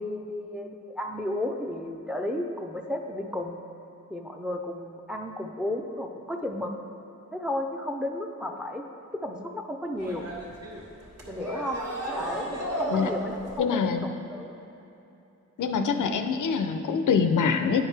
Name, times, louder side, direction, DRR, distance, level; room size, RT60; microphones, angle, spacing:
voice 1, 0.0-3.6 4.1-6.7 7.3-8.8 9.2-10.3 11.3-11.8 12.1-14.6, left 1 dB, 5° right, 3 dB, 0.5 m, -33 dB
sound 1, 10.0-13.6, right 1 dB, 55° right, 1.3 m, -33 dB
voice 2, 13.6-14.1 15.6-17.8, left 6 dB, 80° left, 7 dB, 0.5 m, -25 dB
9.9 x 4.7 x 3.3 m, 2.9 s
wide cardioid pair, 80°, 30 cm